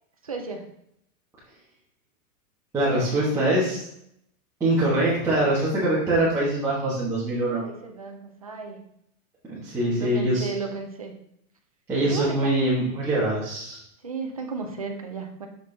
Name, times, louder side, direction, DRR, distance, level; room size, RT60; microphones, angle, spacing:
voice 1, 0.2-0.6 7.6-8.8 10.0-11.1 12.0-12.6 14.0-15.5, right 4 dB, 30° right, 3 dB, 0.3 m, -34 dB
voice 2, 2.7-3.8 4.6-7.6 9.5-10.5 11.9-13.8, right 1 dB, 5° right, -11 dB, 1.3 m, -23 dB
6.8 x 6.3 x 3.3 m, 0.74 s
supercardioid pair, 175°, 44 cm